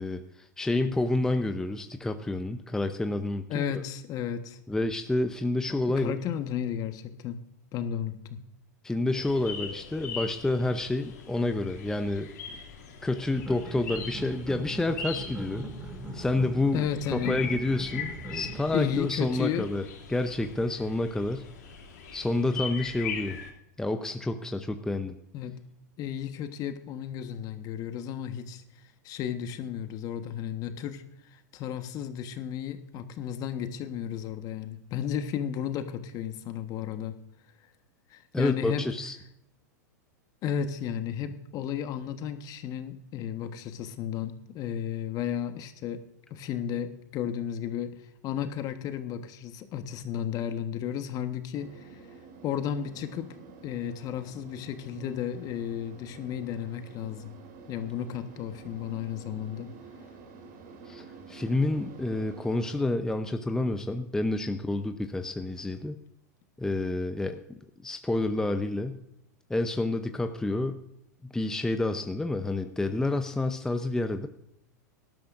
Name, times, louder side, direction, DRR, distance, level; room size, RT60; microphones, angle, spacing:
voice 1, 0.0-3.8 4.7-6.2 8.8-12.3 13.0-15.7 16.1-19.8 20.1-21.5 22.1-23.4 23.8-25.2 38.3-39.2 60.9-66.0 66.6-69.0 69.5-70.8 71.2-74.3, left 2 dB, 5° left, 7 dB, 0.7 m, -29 dB
voice 2, 3.5-4.6 5.7-7.4 7.7-8.4 16.7-17.4 18.7-19.7 25.3-25.5 26.0-28.6 29.0-31.0 31.5-37.2 38.1-38.9 40.4-46.0 46.3-47.9 48.2-51.8 52.4-53.3 53.6-57.3 57.7-59.7, left 9 dB, 40° left, 8 dB, 1.3 m, -33 dB
sound 1, 9.1-23.5, left 6 dB, 70° left, 2.7 m, -41 dB
sound 2, 13.3-19.0, right 1 dB, 15° right, 2.2 m, -40 dB
sound 3, 51.5-62.9, right 4 dB, 55° right, 3.1 m, -49 dB
18.5 x 12.5 x 2.6 m, 0.78 s
hypercardioid pair, 105°, 10 cm